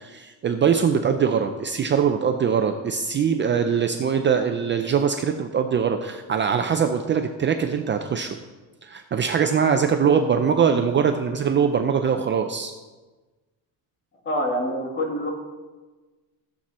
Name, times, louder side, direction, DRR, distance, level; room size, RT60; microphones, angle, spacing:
voice 1, 0.0-8.4 8.8-12.7, right 7 dB, 30° right, 6 dB, 0.5 m, -22 dB
voice 2, 14.2-15.3, equal, 30° left, 1 dB, 2.2 m, -26 dB
14.5 x 7.5 x 4.2 m, 1.2 s
cardioid pair, 160°, 38 cm